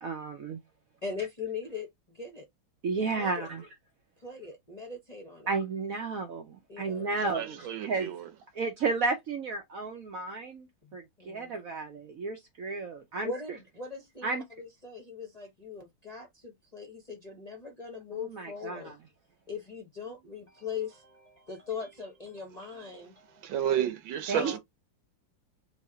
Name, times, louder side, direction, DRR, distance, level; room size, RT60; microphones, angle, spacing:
voice 1, 0.0-0.6 2.8-3.7 5.5-8.1 8.5-13.3 14.2-14.4 18.1-18.9 24.3-24.5, right 4 dB, 60° right, 0.9 m, -33 dB
voice 2, 1.0-2.4 3.2-3.5 4.2-5.5 6.7-7.4 10.8-11.5 13.2-19.0 19.5-23.5 24.3-24.6, left 5 dB, 30° left, 0.8 m, -40 dB
voice 3, 7.3-8.3 23.4-24.6, right 10 dB, 80° right, 1.6 m, -31 dB
3.4 x 3.1 x 3.8 m
omnidirectional pair, 2.1 m